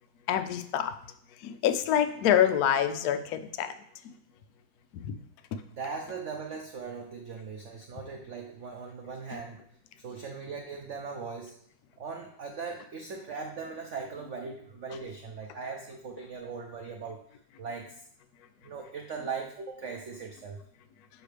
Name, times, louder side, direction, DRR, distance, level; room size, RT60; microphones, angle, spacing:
voice 1, 0.3-0.9 1.4-3.7 4.0-4.1 4.9-5.2 5.5-5.6 9.3-9.4, left 10 dB, 75° left, 9 dB, 0.9 m, -26 dB
voice 2, 5.8-9.6 10.0-11.5 12.0-17.2 17.6-18.0 18.6-20.6, right 5 dB, 75° right, 2 dB, 0.6 m, -39 dB
7.4 x 4.6 x 3.3 m, 0.67 s
omnidirectional pair, 2.1 m